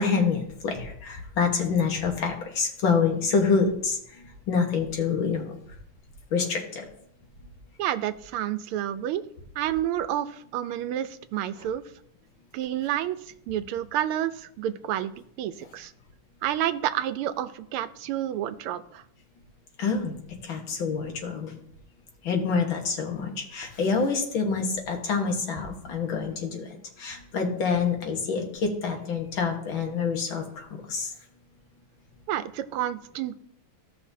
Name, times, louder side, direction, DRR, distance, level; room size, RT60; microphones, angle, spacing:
voice 1, 0.0-5.5 6.3-6.9 19.8-20.2 20.4-21.6 22.2-26.7 27.0-31.1, left 5 dB, 65° left, 2 dB, 2.1 m, -27 dB
voice 2, 7.8-9.2 9.6-11.8 12.5-13.2 13.5-15.1 15.4-15.9 16.4-19.0 32.3-33.3, right 11 dB, 90° right, 12 dB, 1.5 m, -29 dB
15.5 x 5.7 x 2.7 m, 0.69 s
omnidirectional pair, 2.3 m